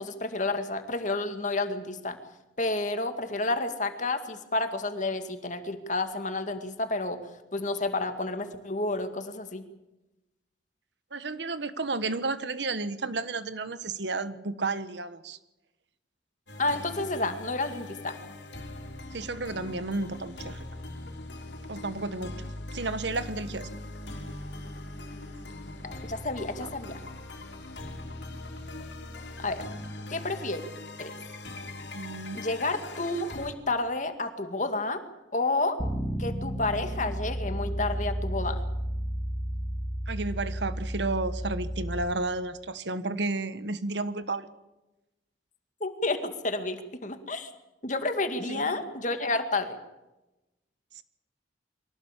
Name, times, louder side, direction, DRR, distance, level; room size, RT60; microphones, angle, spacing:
voice 1, 0.0-2.2 2.6-7.2 7.5-9.6 16.6-18.2 25.8-27.0 29.4-29.7 30.1-30.6 31.0-31.2 32.3-35.0 35.3-35.8 36.2-38.6 45.8-47.5 47.8-49.8, left 2 dB, 40° left, 8 dB, 2.1 m, -30 dB
voice 2, 11.1-15.4 19.1-20.6 21.7-23.7 26.6-26.7 31.9-32.4 40.1-44.5 48.5-48.7 51.0-51.1, right 3 dB, 70° right, 13 dB, 1.3 m, -32 dB
sound 1, 16.5-33.5, left 2 dB, 70° left, 3.7 m, -41 dB
Bass guitar, 35.8-42.0, equal, 10° left, 2.8 m, -32 dB
23.5 x 17.5 x 8.4 m, 1.0 s
head